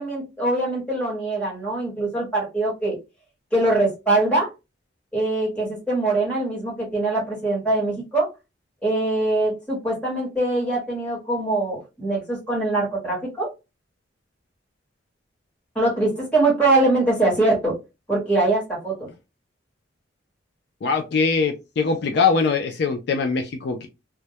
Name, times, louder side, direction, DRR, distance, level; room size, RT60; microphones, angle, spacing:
voice 1, 0.0-3.0 3.5-4.5 5.1-8.3 8.8-13.5 15.7-17.7 18.1-19.1, right 2 dB, 5° left, -4 dB, 1.1 m, -23 dB
voice 2, 20.8-23.9, left 5 dB, 60° left, 5 dB, 0.3 m, -22 dB
2.2 x 2.1 x 2.7 m, 0.25 s
head